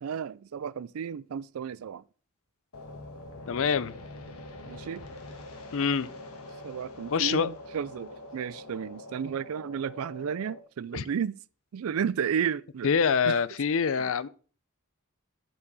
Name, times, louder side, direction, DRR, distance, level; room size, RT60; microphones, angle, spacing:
voice 1, 0.0-2.0 4.6-5.1 6.6-11.4 11.7-12.9 13.3-13.4, right 7 dB, 70° right, 0.4 m, -33 dB
sound 1, 2.7-10.6, left 1 dB, 90° left, 1.4 m, -44 dB
voice 2, 3.5-4.0 5.7-6.1 7.1-7.5 10.9-11.0 12.8-14.3, left 6 dB, 65° left, 0.5 m, -25 dB
11.5 x 4.7 x 5.4 m
head